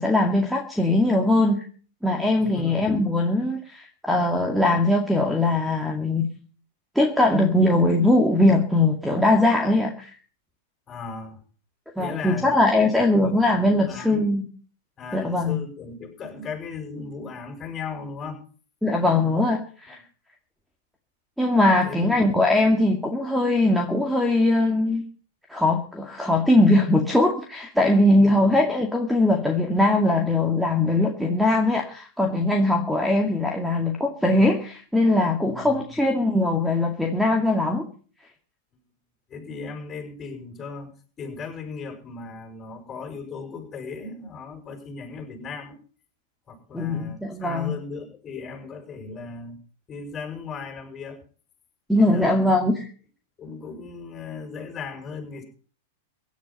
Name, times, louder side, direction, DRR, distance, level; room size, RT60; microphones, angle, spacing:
voice 1, 0.0-1.6 2.0-6.3 7.0-10.1 12.0-14.5 15.1-15.6 18.8-20.0 21.4-25.0 25.5-37.8 46.7-47.7 51.9-52.9, left 2 dB, ahead, 3 dB, 2.2 m, -21 dB
voice 2, 2.4-2.9 10.9-11.4 12.0-14.3 15.0-18.4 21.8-22.4 28.2-28.6 35.4-35.9 39.3-40.9 41.2-45.8 46.5-49.6 49.9-51.2 52.0-52.5 53.4-55.4, left 4 dB, 25° left, 4 dB, 6.2 m, -37 dB
16.5 x 10.5 x 5.5 m, 0.42 s
hypercardioid pair, 115°, 0 cm